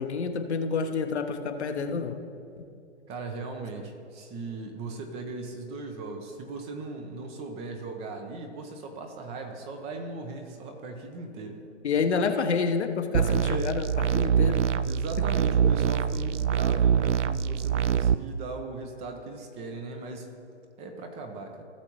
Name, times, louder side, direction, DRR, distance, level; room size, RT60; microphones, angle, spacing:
voice 1, 0.0-2.2 11.8-13.9 14.1-14.6, left 5 dB, 65° left, 6 dB, 1.0 m, -28 dB
voice 2, 3.1-11.6 13.4-13.8 14.9-20.3 20.8-21.6, right 3 dB, 20° right, 4 dB, 0.7 m, -38 dB
sound 1, 13.1-18.1, right 8 dB, 75° right, 0.5 m, -24 dB
17.0 x 6.9 x 3.0 m, 2.6 s
figure-of-eight pair, 130°, 36 cm